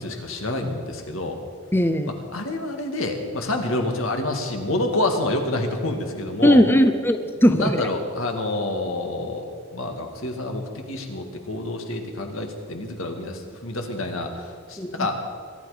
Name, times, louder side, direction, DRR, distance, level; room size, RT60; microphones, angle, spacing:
voice 1, 0.0-1.4 2.3-6.6 7.5-9.5 9.7-15.2, left 2 dB, 70° left, 4 dB, 2.1 m, -28 dB
voice 2, 1.7-2.1 6.4-7.9 14.8-14.9, equal, 10° left, 9 dB, 0.6 m, -18 dB
23.5 x 11.5 x 5.1 m, 2.1 s
head